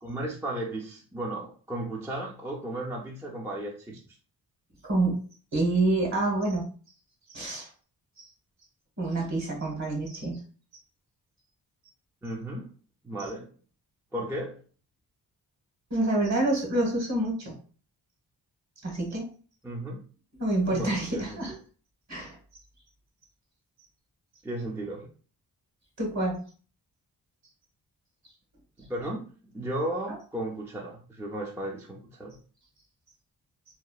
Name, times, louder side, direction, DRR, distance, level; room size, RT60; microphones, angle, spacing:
voice 1, 0.0-4.0 12.2-12.7 13.0-13.5 14.1-14.6 19.6-20.0 20.7-21.6 24.4-25.1 28.8-32.4, right 1 dB, 5° right, -2 dB, 0.4 m, -35 dB
voice 2, 4.8-5.2 5.5-6.6 7.3-7.7 8.2-8.3 9.0-10.4 15.9-17.5 18.8-19.3 20.4-21.5 22.1-22.4 26.0-26.4, right 2 dB, 45° right, -1 dB, 1.2 m, -27 dB
2.9 x 2.0 x 2.3 m, 0.40 s
cardioid pair, 90°, 40 cm